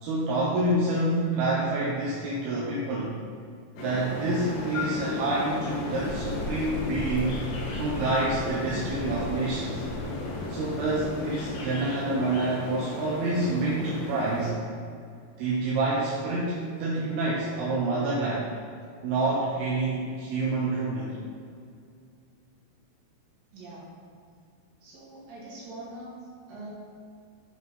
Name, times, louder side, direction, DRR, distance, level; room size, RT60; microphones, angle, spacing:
voice 1, 0.0-3.1 3.8-9.8 10.5-14.5 15.4-18.5 19.0-21.2, right 2 dB, 75° right, -5 dB, 2.7 m, -28 dB
sound 1, 3.8-14.5, left 2 dB, 65° left, 2.6 m, -35 dB
sound 2, 5.9-11.6, equal, 85° left, 1.7 m, -39 dB
voice 2, 23.5-23.9 24.8-26.1 26.5-26.7, right 1 dB, 55° right, -7 dB, 3.8 m, -43 dB
8.3 x 5.1 x 5.4 m, 2.3 s
omnidirectional pair, 5.1 m